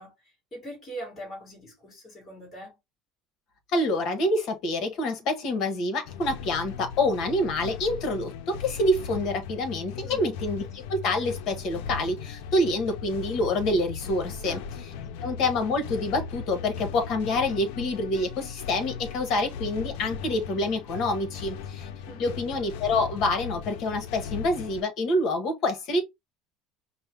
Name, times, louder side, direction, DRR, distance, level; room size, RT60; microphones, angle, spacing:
voice 1, 0.0-2.8 10.0-10.3 14.4-14.7 22.1-22.3, right 1 dB, 10° left, 2.2 m, -42 dB
voice 2, 3.7-14.6 15.2-21.9 22.2-26.0, left 2 dB, 40° left, 1.2 m, -27 dB
sound 1, 6.1-24.8, left 6 dB, 70° left, 0.5 m, -38 dB
5.3 x 2.2 x 3.4 m
cardioid pair, 180°, 0 cm